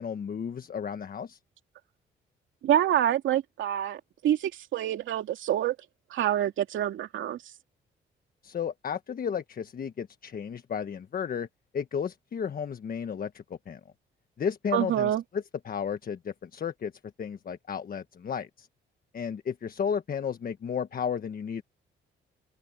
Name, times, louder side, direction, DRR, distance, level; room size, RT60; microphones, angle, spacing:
voice 1, 0.0-1.4 8.4-11.5 11.7-13.8 14.4-16.9 17.2-18.7 19.1-21.6, left 7 dB, 45° left, 1.4 m, -33 dB
voice 2, 2.6-5.8 6.1-7.4 14.7-15.2, right 11 dB, 75° right, 2.6 m, -26 dB
open air
cardioid pair, 90°, 20 cm